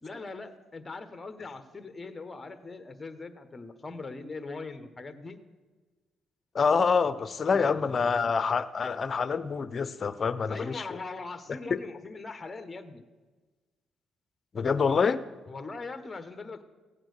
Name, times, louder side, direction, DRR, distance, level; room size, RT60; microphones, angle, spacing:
voice 1, 0.0-5.4 7.5-8.3 10.5-13.0 15.5-16.6, left 3 dB, 25° left, 10 dB, 1.3 m, -41 dB
voice 2, 6.5-10.8 11.7-11.8 14.5-15.2, left 5 dB, 40° left, 14 dB, 0.7 m, -26 dB
16.0 x 8.8 x 6.7 m, 1.3 s
cardioid pair, 90°, 0 cm